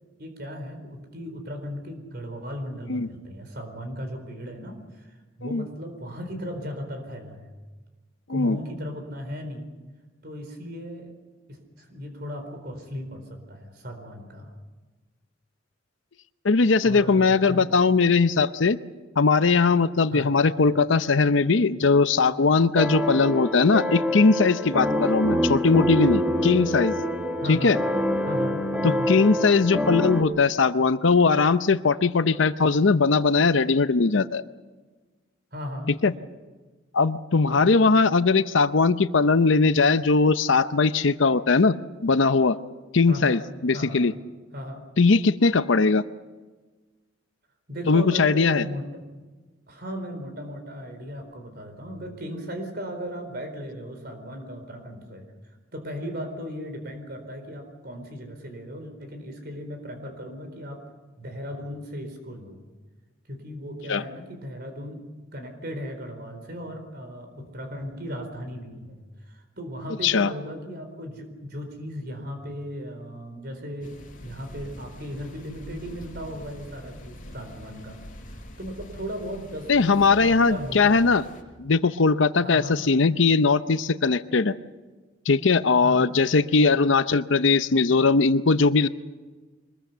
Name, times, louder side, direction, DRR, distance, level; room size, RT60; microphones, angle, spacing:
voice 1, 0.2-7.5 8.3-9.7 10.2-11.1 11.5-14.5 16.8-17.7 20.1-20.3 27.4-27.7 28.2-29.1 35.5-35.9 37.5-37.8 43.1-43.4 43.7-44.1 44.5-44.8 47.7-48.9 49.7-55.2 55.7-60.8 61.2-62.6 63.3-65.0 65.3-69.0 69.3-73.9 74.2-81.0 82.4-82.8 85.8-86.1, equal, 50° right, 6 dB, 4.3 m, -36 dB
voice 2, 16.4-18.8 19.2-27.0 27.5-27.8 28.8-34.4 36.0-36.1 36.9-41.8 42.0-42.6 42.9-44.1 45.0-46.0 47.9-48.6 63.9-64.0 70.0-70.3 79.7-81.2 81.6-84.6 85.3-88.9, left 4 dB, 70° left, 12 dB, 0.7 m, -20 dB
sound 1, 22.7-30.2, equal, 5° right, 1.8 m, -26 dB
sound 2, 73.8-81.4, equal, 40° left, 5.0 m, -44 dB
24.0 x 21.0 x 6.9 m, 1.3 s
head